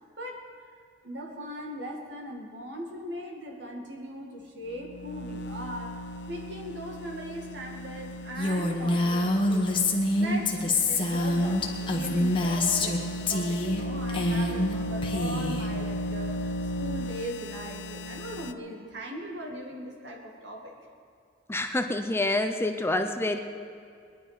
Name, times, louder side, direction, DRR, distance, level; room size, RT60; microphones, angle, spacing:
voice 1, 0.2-0.5 1.0-6.0 6.3-9.9 10.2-20.9, equal, 75° right, 0 dB, 2.2 m, -39 dB
sound 1, 4.7-18.5, left 1 dB, 70° left, 0.6 m, -36 dB
Female speech woman speaking, 8.4-13.0 13.3-13.8 14.1-14.7 15.0-15.7, left 2 dB, 30° left, 1.4 m, -26 dB
voice 2, 21.5-23.4, left 2 dB, 15° left, 6 dB, 0.6 m, -27 dB
21.0 x 11.0 x 5.1 m, 2.3 s
head